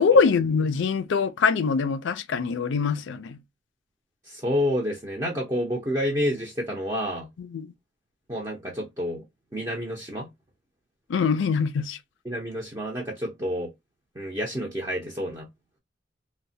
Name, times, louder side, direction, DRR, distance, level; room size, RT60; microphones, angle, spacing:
voice 1, 0.0-3.4 7.4-7.7 11.1-12.0, left 5 dB, 85° left, 0.4 m, -23 dB
voice 2, 4.3-7.3 8.3-9.2 9.5-10.3 12.2-13.7 14.2-15.5, equal, 20° right, 0.5 m, -29 dB
3.1 x 2.1 x 2.6 m
head